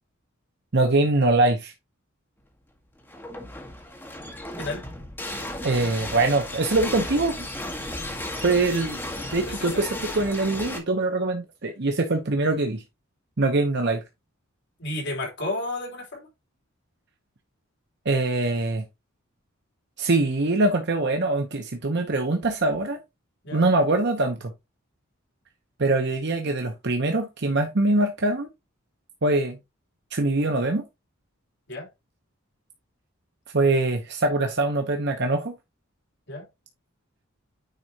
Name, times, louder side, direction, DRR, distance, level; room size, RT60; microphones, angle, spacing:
voice 1, 0.7-1.7 5.6-7.5 8.4-9.0 9.3-12.8 13.4-14.0 18.0-18.8 20.0-23.0 23.5-24.5 25.8-28.5 29.2-29.6 30.1-30.8 33.5-35.5, right 2 dB, 55° right, 0.9 m, -23 dB
sound 1, 3.0-10.8, left 1 dB, 10° left, 1.6 m, -34 dB
voice 2, 9.5-9.8 14.8-16.3 23.4-23.6 31.7-31.9 36.3-36.5, left 2 dB, 60° left, 3.5 m, -32 dB
9.4 x 4.8 x 2.9 m
head